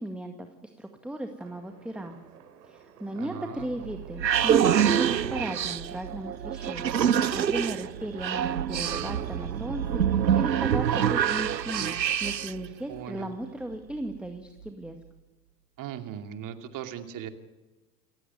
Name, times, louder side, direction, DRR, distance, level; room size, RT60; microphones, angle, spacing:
voice 1, 0.0-2.2 2.6-7.0 7.3-15.0, right 1 dB, ahead, 6 dB, 1.9 m, -36 dB
sound 1, 1.4-6.8, right 7 dB, 65° right, 3.2 m, -53 dB
voice 2, 3.2-3.8 12.9-13.3 15.8-17.3, right 9 dB, 40° right, 7 dB, 2.6 m, -39 dB
sound 2, 3.6-12.7, right 9 dB, 90° right, 0.7 m, -26 dB
28.5 x 15.5 x 9.6 m, 1.2 s
figure-of-eight pair, 80°, 49 cm